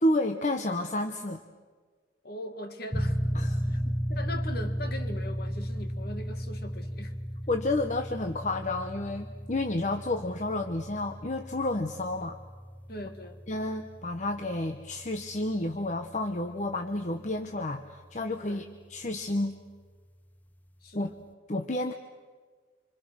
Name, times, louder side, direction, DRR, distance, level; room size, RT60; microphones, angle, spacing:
voice 1, 0.0-1.4 3.3-3.8 7.5-12.4 13.5-19.6 20.9-21.1 21.5-21.9, left 2 dB, 40° left, 6 dB, 0.9 m, -30 dB
voice 2, 2.2-3.2 3.7-7.2 12.9-13.4 18.4-18.7 20.8-21.2, left 1 dB, 55° left, 7 dB, 1.9 m, -41 dB
sound 1, 2.9-17.3, equal, 10° left, 0.7 m, -35 dB
26.5 x 25.5 x 6.3 m, 1.5 s
head